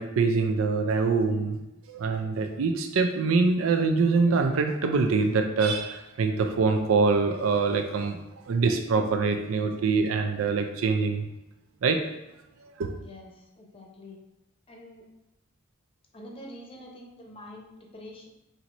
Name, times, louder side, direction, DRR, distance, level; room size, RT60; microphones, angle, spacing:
voice 1, 0.0-1.6 1.9-11.3 11.8-12.0 12.6-13.0, right 4 dB, 75° right, 5 dB, 0.4 m, -24 dB
voice 2, 13.0-14.2 14.7-15.0 16.1-18.3, left 1 dB, 25° left, 0 dB, 0.7 m, -46 dB
4.4 x 2.6 x 4.1 m, 0.93 s
head